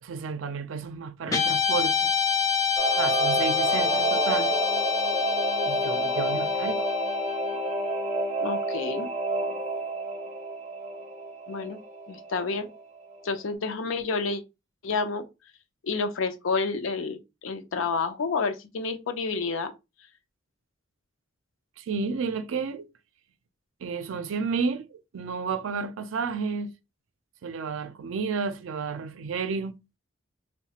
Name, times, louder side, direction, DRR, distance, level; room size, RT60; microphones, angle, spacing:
voice 1, 0.0-2.1 3.0-4.5 5.6-6.9 21.8-22.9 23.8-26.7 27.4-29.8, right 5 dB, 75° right, 0.4 m, -31 dB
Guitar, 1.3-9.8, left 7 dB, 15° left, 0.3 m, -28 dB
Singing / Musical instrument, 2.8-12.8 13.1-13.2, right 3 dB, 35° right, 0.6 m, -29 dB
voice 2, 8.4-9.1 11.5-11.8 12.1-12.7 13.2-14.4 14.8-15.3 15.8-19.7, left 4 dB, 75° left, 0.5 m, -29 dB
3.1 x 2.2 x 2.8 m
head